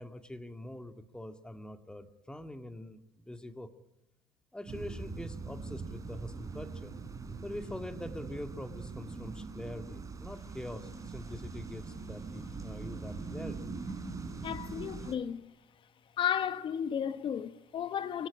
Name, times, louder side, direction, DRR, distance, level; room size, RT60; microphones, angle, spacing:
voice 1, 0.0-3.7 4.5-6.9 7.4-13.7, left 1 dB, 5° left, 2.2 m, -44 dB
sound 1, 4.7-15.2, right 4 dB, 25° right, 4.1 m, -42 dB
voice 2, 14.4-15.4 16.2-18.3, left 9 dB, 40° left, 1.3 m, -33 dB
24.0 x 17.5 x 9.9 m
hypercardioid pair, 70°, 13 cm